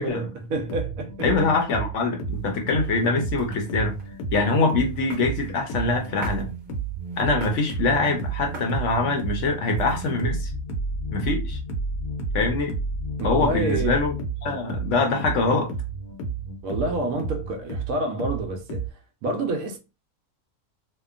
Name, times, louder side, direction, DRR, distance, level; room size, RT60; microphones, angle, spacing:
voice 1, 0.0-1.1 13.2-14.0 16.6-18.9 19.2-19.8, right 2 dB, 75° right, 1.0 m, -28 dB
sound 1, 0.5-18.9, right 3 dB, 85° left, 1.1 m, -31 dB
voice 2, 1.2-4.0 4.3-6.5 7.2-10.5 11.1-11.6 12.3-12.7 13.2-14.1 14.4-15.7, left 3 dB, 65° left, 0.8 m, -24 dB
sound 2, 2.3-10.4, right 2 dB, 40° right, 0.9 m, -46 dB
2.8 x 2.1 x 2.4 m
omnidirectional pair, 1.5 m